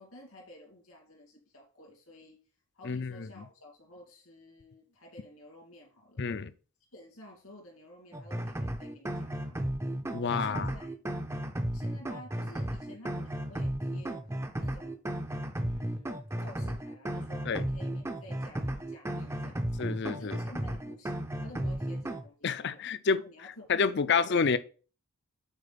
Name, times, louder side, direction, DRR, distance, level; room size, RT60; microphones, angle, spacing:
voice 1, 0.0-2.4 2.7-6.3 6.9-9.7 10.2-10.9 11.7-14.2 14.6-15.0 15.6-19.6 20.2-22.9 23.2-24.3, left 1 dB, 75° left, 2.4 m, -52 dB
voice 2, 2.8-3.3 6.2-6.5 10.1-10.7 17.5-17.6 19.8-20.4 22.4-23.2 23.7-24.6, left 5 dB, 50° left, 0.5 m, -28 dB
sound 1, 8.1-22.3, right 1 dB, 10° right, 0.5 m, -34 dB
8.1 x 4.6 x 4.1 m
head